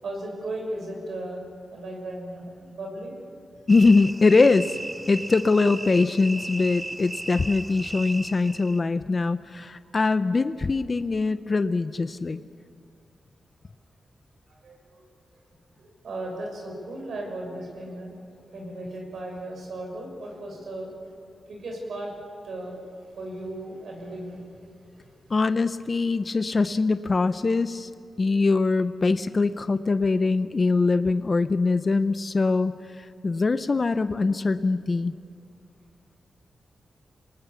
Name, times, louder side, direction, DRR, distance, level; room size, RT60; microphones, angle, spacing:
voice 1, 0.0-1.4 1.7-3.2 7.4-7.8 9.8-9.9 14.5-15.1 15.8-18.1 18.4-20.9 21.5-22.1 22.4-22.8 23.2-25.3 35.2-35.3, right 1 dB, 75° right, 1 dB, 6.6 m, -36 dB
voice 2, 3.7-4.8 5.1-12.4 25.3-27.9 28.2-32.7 33.2-35.1, left 3 dB, 40° left, 11 dB, 0.6 m, -22 dB
sound 1, 3.7-8.8, right 1 dB, 15° right, 0.6 m, -36 dB
26.0 x 19.5 x 7.0 m, 2.2 s
cardioid pair, 90°, 0 cm